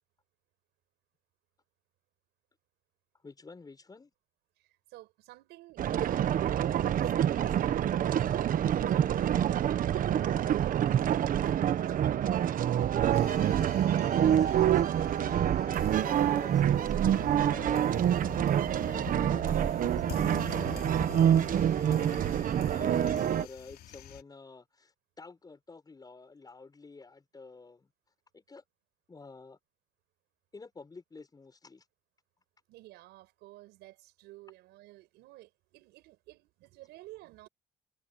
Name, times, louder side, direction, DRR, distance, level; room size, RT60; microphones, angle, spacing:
voice 1, 3.2-4.1 13.1-18.2 18.8-22.4 22.7-27.9 28.3-28.6 29.1-29.6 30.5-31.8, left 4 dB, 20° left, 7.2 m, -49 dB
voice 2, 4.6-8.7 9.0-12.2 32.7-37.5, right 18 dB, 90° right, 5.9 m, -52 dB
sound 1, 5.8-23.5, right 10 dB, 55° right, 1.2 m, -27 dB
sound 2, 13.1-24.2, left 11 dB, 65° left, 3.6 m, -46 dB
cardioid pair, 110°, 17 cm